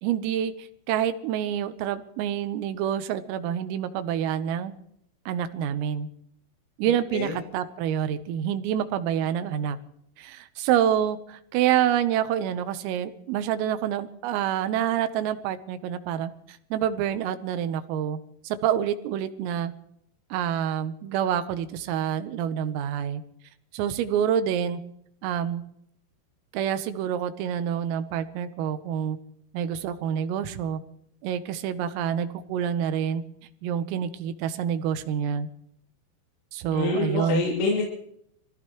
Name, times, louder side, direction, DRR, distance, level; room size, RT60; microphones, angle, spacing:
voice 1, 0.0-4.7 5.3-6.1 6.8-9.8 10.2-18.2 18.5-19.7 20.3-23.2 23.7-24.8 25.2-25.6 26.5-29.2 29.5-30.8 31.2-33.2 33.6-35.5 36.5-37.4, right 9 dB, 85° right, 11 dB, 3.7 m, -27 dB
voice 2, 36.7-37.8, left 3 dB, 85° left, -4 dB, 5.7 m, -26 dB
26.0 x 16.5 x 3.1 m, 0.72 s
omnidirectional pair, 5.8 m